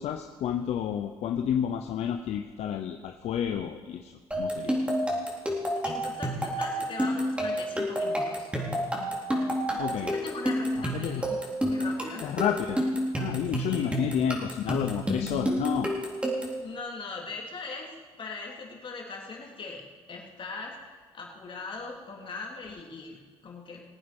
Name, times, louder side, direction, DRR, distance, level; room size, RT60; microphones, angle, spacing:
voice 1, 0.0-4.8 9.8-10.1 10.8-11.2 12.2-12.8 13.2-15.9, left 9 dB, 70° left, 5 dB, 0.8 m, -30 dB
sound 1, 4.3-16.6, equal, 10° right, 3.7 m, -30 dB
voice 2, 5.8-8.5 10.0-11.4 11.7-12.2 13.7-14.0 16.6-17.9 18.2-23.8, left 4 dB, 50° left, -1 dB, 3.4 m, -40 dB
20.5 x 8.9 x 5.4 m, 1.5 s
cardioid pair, 80°, 11 cm